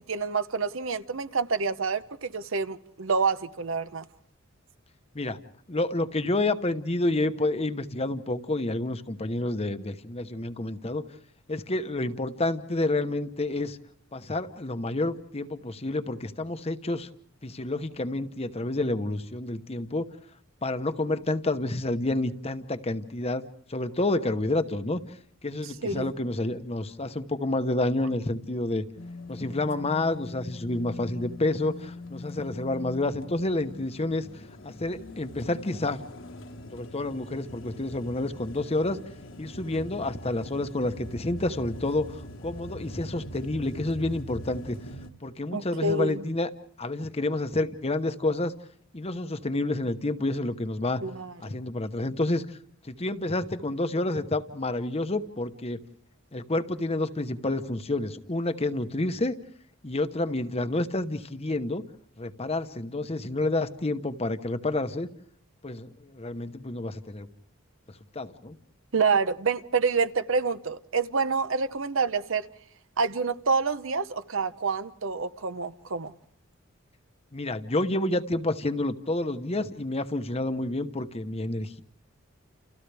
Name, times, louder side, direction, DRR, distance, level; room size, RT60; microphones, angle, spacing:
voice 1, 0.1-4.1 25.8-26.1 45.5-46.2 51.0-51.6 68.9-72.5 73.0-76.1, right 4 dB, 65° right, 0.8 m, -27 dB
voice 2, 5.7-11.0 11.5-13.8 14.1-17.1 17.4-20.1 20.6-25.0 25.4-28.8 29.3-34.3 34.6-36.0 36.7-39.0 39.4-44.8 45.2-46.5 46.8-48.5 48.9-51.0 51.4-52.6 52.9-55.8 56.3-59.3 59.8-61.8 62.2-65.1 65.6-67.3 68.1-68.6 77.3-81.8, left 2 dB, 30° left, 1.0 m, -29 dB
sound 1, 29.0-45.1, left 1 dB, 65° left, 1.5 m, -42 dB
29.5 x 29.5 x 3.4 m
head